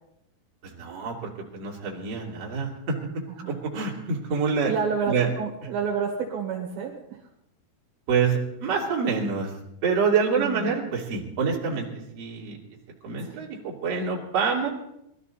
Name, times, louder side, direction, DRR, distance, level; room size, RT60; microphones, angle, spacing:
voice 1, 0.6-4.7 5.1-5.3 8.1-9.5 9.8-11.9 12.2-12.6 13.0-14.7, right 5 dB, 40° right, -2 dB, 3.5 m, -26 dB
voice 2, 4.6-7.2 10.3-10.8 13.2-13.4, right 6 dB, 65° right, 1 dB, 3.3 m, -29 dB
21.5 x 13.0 x 4.2 m, 0.80 s
omnidirectional pair, 4.8 m